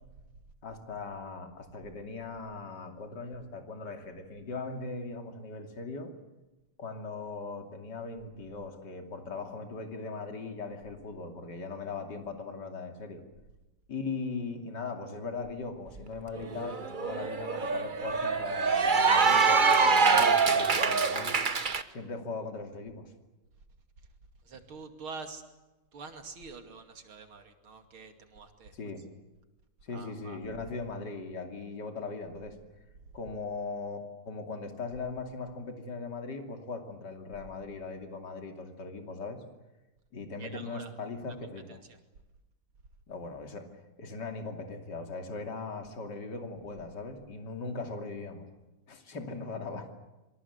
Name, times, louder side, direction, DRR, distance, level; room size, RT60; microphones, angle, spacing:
voice 1, 0.6-6.1 6.8-13.2 13.9-21.4 21.9-23.1 28.7-29.0 29.8-32.6 33.1-34.0 34.2-39.4 40.1-41.8 43.1-43.7 44.0-48.4 48.9-49.9, left 4 dB, 55° left, 4 dB, 3.3 m, -39 dB
Cheering / Applause, 16.0-16.1 16.4-21.8, right 5 dB, 35° right, 0.9 m, -25 dB
voice 2, 24.4-25.4 25.9-28.7 29.9-30.4 40.4-40.9 41.7-41.8, right 4 dB, 80° right, 6 dB, 3.4 m, -46 dB
27.0 x 23.5 x 8.2 m, 1.0 s
omnidirectional pair, 2.3 m